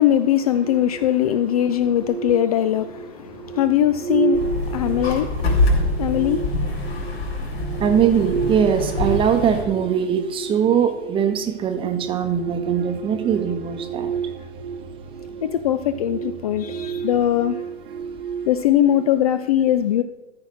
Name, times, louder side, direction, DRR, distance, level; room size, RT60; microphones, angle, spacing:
voice 1, 0.0-6.6 15.4-17.6 18.5-20.0, left 11 dB, 35° left, 11 dB, 0.4 m, -21 dB
sound 1, 0.5-19.4, right 7 dB, 50° right, 1.1 m, -32 dB
sound 2, 4.3-9.6, left 2 dB, 65° left, 3.5 m, -24 dB
voice 2, 7.8-14.1, right 8 dB, 15° right, 7 dB, 0.9 m, -21 dB
13.5 x 4.8 x 6.2 m, 1.0 s
figure-of-eight pair, 120°, 34 cm